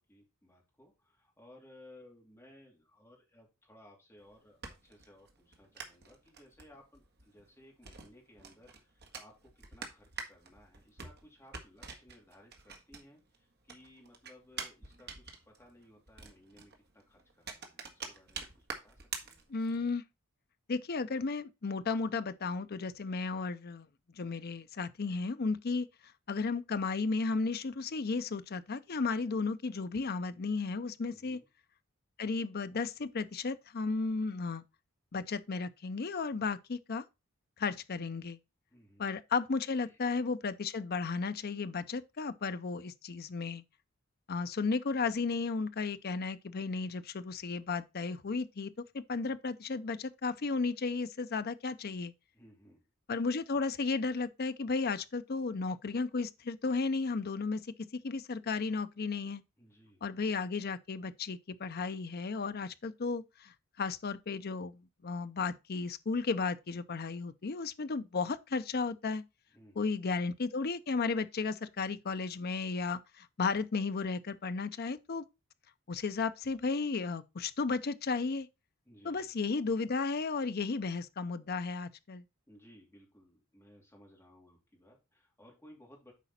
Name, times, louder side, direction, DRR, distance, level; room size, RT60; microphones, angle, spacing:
voice 1, 0.0-19.5 31.0-31.5 38.7-39.1 39.8-40.0 52.3-52.8 59.6-60.0 69.5-70.0 78.8-79.3 82.5-86.1, left 1 dB, 10° left, 3.0 m, -59 dB
sound 1, 4.2-13.4 13.6-19.9, right 5 dB, 50° right, 1.5 m, -46 dB
voice 2, 19.5-20.0 20.7-23.9 24.2-25.9 26.3-31.4 32.2-34.6 35.1-37.0 37.6-38.4 39.0-43.6 44.3-52.1 53.1-57.6 58.0-59.4 60.0-69.2 69.8-75.3 75.9-78.5 79.0-82.2, left 4 dB, 45° left, 0.6 m, -34 dB
8.3 x 5.0 x 4.2 m
head